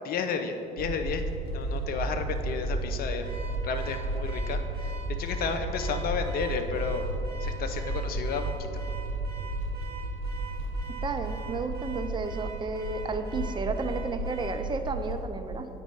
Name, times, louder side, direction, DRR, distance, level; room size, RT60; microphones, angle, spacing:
voice 1, 0.0-3.3 3.6-7.1 7.4-8.8, left 5 dB, 50° left, 7 dB, 0.7 m, -32 dB
sound 1, 0.8-15.2, right 2 dB, 75° right, 0.9 m, -33 dB
Car / Alarm, 3.2-14.6, right 6 dB, 50° right, 1.6 m, -45 dB
voice 2, 10.9-15.7, right 4 dB, 25° right, 7 dB, 0.6 m, -32 dB
8.0 x 5.2 x 4.7 m, 2.8 s
figure-of-eight pair, 50°, 19 cm